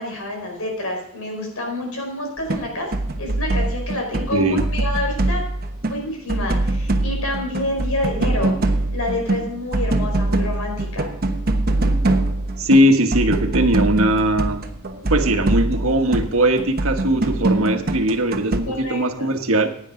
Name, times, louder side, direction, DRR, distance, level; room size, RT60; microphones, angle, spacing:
voice 1, 0.0-2.9 3.2-5.5 5.9-8.5 8.9-11.1 18.7-19.3, left 1 dB, 90° left, 2 dB, 4.6 m, -28 dB
sound 1, 2.4-2.7 2.9-4.3 4.6-6.0 6.3-18.6, right 2 dB, 45° right, 1.1 m, -23 dB
voice 2, 4.3-4.6 12.6-14.6 15.1-19.7, right 1 dB, 75° right, 5 dB, 1.4 m, -19 dB
16.0 x 9.6 x 3.8 m, 0.75 s
head